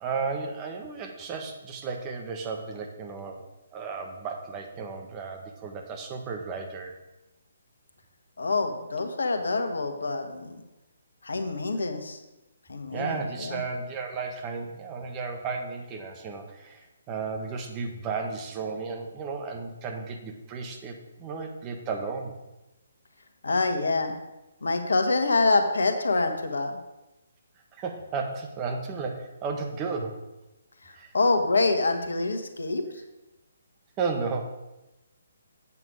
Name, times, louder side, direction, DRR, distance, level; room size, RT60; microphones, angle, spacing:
voice 1, 0.0-3.4 3.7-6.9 12.9-22.3 27.8-30.2 30.9-31.1 34.0-34.5, right 4 dB, 25° right, 3 dB, 1.3 m, -34 dB
voice 2, 8.4-10.6 11.2-12.2 12.7-13.6 23.4-24.1 24.6-26.8 30.8-32.8, left 3 dB, 75° left, 7 dB, 1.3 m, -26 dB
8.4 x 6.9 x 5.0 m, 0.99 s
figure-of-eight pair, 140°, 0 cm